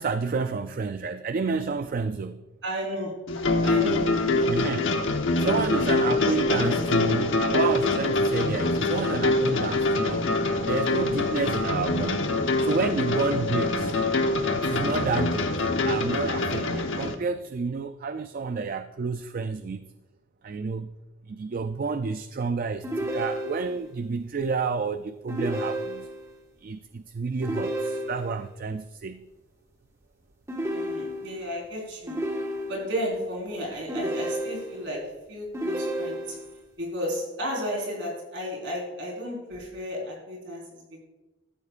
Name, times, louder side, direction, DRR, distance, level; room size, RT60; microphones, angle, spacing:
voice 1, 0.0-2.4 4.5-4.9 5.4-10.3 10.7-12.3 12.6-14.0 14.5-15.6 15.8-19.9 20.4-20.9 21.3-26.1 26.6-29.2, right 4 dB, 45° right, 10 dB, 0.3 m, -30 dB
voice 2, 2.6-3.2 3.6-4.7 5.3-5.6 11.3-11.5 30.7-32.2 32.7-36.4 36.8-41.0, equal, 60° right, -1 dB, 4.3 m, -33 dB
sound 1, 3.3-17.1, left 2 dB, 65° left, 1.1 m, -25 dB
sound 2, 22.8-23.9 25.3-26.3 27.4-28.5 30.5-31.5 32.1-33.0 33.9-34.9 35.5-36.6, equal, 15° right, 1.4 m, -31 dB
13.5 x 13.0 x 2.5 m, 1.1 s
head